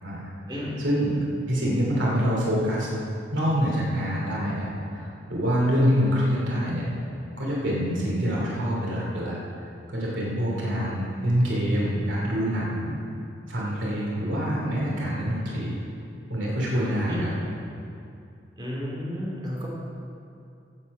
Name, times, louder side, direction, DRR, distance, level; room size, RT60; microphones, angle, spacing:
voice 1, 0.8-1.1 1.5-2.9 3.3-6.8 7.4-9.4 9.9-12.9 13.5-15.8 16.3-17.3, equal, 90° right, -4 dB, 2.9 m, -25 dB
voice 2, 18.6-19.7, equal, 25° right, -4 dB, 2.6 m, -32 dB
14.5 x 7.9 x 5.5 m, 2.6 s
head